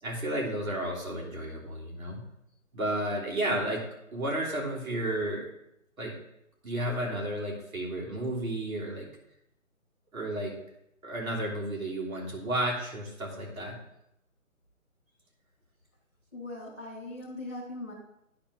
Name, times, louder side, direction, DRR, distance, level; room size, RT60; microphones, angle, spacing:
voice 1, 0.0-2.2 2.7-3.8 4.1-5.5 6.0-6.1 6.6-9.1 10.1-10.5 11.0-13.8, right 1 dB, 75° right, -2 dB, 3.2 m, -32 dB
voice 2, 16.3-17.9, left 2 dB, 5° right, -9 dB, 1.5 m, -40 dB
10.5 x 4.4 x 5.0 m, 0.80 s
hypercardioid pair, 170°, 42 cm